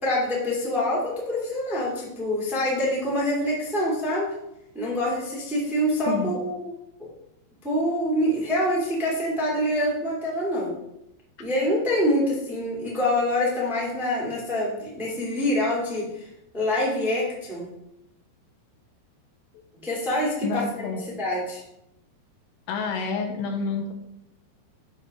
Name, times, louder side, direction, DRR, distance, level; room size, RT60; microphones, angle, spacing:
voice 1, 0.0-4.3 4.7-6.7 7.6-10.7 11.4-16.0 16.5-17.7 19.8-20.9 21.2-21.6, left 1 dB, ahead, -5 dB, 1.4 m, -25 dB
voice 2, 20.4-21.0 22.7-23.9, left 4 dB, 85° left, 3 dB, 3.2 m, -28 dB
9.1 x 4.2 x 6.1 m, 0.83 s
omnidirectional pair, 5.0 m